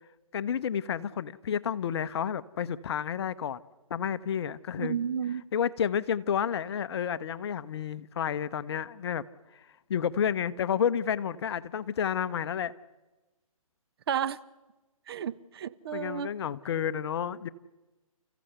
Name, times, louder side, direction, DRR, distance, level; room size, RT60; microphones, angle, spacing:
voice 1, 0.3-3.6 3.9-5.0 5.5-9.2 9.5-9.6 9.9-12.7 15.9-17.5, left 8 dB, 45° left, 0.8 m, -30 dB
voice 2, 4.8-5.4 14.1-14.4 15.1-16.3, right 8 dB, 45° right, 0.8 m, -32 dB
29.5 x 15.0 x 8.0 m
hypercardioid pair, 145°, 18 cm